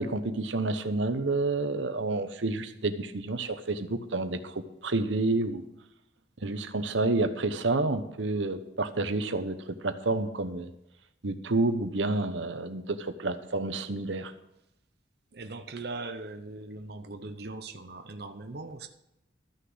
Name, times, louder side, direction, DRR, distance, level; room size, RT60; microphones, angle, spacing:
voice 1, 0.0-5.6 6.4-9.6 9.8-10.7 11.2-14.3, right 2 dB, 80° right, 9 dB, 1.0 m, -29 dB
voice 2, 15.3-18.9, right 3 dB, 55° right, 6 dB, 0.9 m, -40 dB
13.5 x 6.5 x 7.9 m, 0.85 s
head